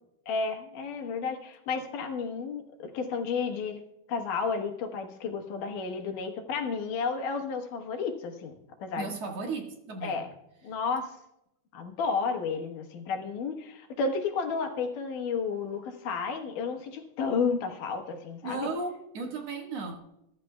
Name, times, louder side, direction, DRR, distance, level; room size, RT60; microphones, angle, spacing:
voice 1, 0.3-3.8 4.1-8.5 8.8-9.1 10.0-10.3 10.6-11.2 11.7-18.7, left 5 dB, 85° left, 3 dB, 2.9 m, -32 dB
voice 2, 9.0-10.2 18.4-20.0, right 4 dB, 55° right, 1 dB, 2.6 m, -35 dB
21.0 x 12.0 x 2.3 m, 0.85 s
omnidirectional pair, 3.6 m